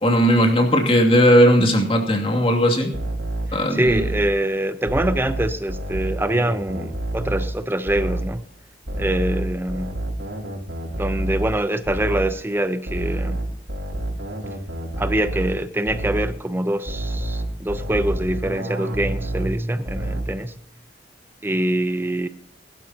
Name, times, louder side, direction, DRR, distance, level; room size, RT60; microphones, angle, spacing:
voice 1, 0.0-2.9 3.5-4.0, equal, 30° left, 2.7 m, -17 dB
sound 1, 2.9-4.4 4.9-7.6 7.9-8.4 8.9-12.4 12.9-15.6 15.9-16.4 16.9-19.6 19.9-20.4, right 1 dB, 90° right, 4.5 m, -28 dB
voice 2, 3.5-8.4 9.0-10.0 11.0-13.4 15.0-20.5 21.4-22.3, right 1 dB, 15° right, 0.8 m, -24 dB
21.5 x 12.0 x 2.9 m
head